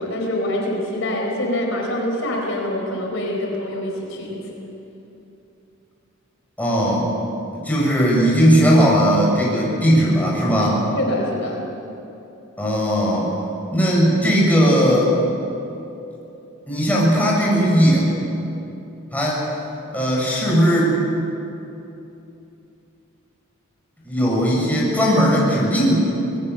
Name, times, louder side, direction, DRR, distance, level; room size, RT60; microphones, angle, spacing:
voice 1, 0.0-4.4 11.0-11.6, left 1 dB, 70° left, 0 dB, 4.5 m, -25 dB
voice 2, 6.6-7.1 7.5-10.8 12.6-13.3 13.7-15.1 16.7-18.1 19.1-19.5 19.9-21.0 24.0-25.9, equal, 10° left, -5 dB, 6.9 m, -17 dB
26.0 x 19.5 x 7.0 m, 2.8 s
head